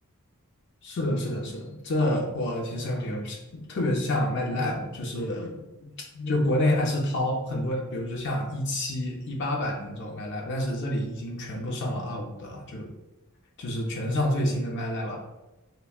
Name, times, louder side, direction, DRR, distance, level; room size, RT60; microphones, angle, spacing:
voice 1, 0.8-12.9 13.6-15.2, left 1 dB, 55° left, -1 dB, 0.4 m, -28 dB
3.3 x 2.1 x 2.3 m, 1.0 s
head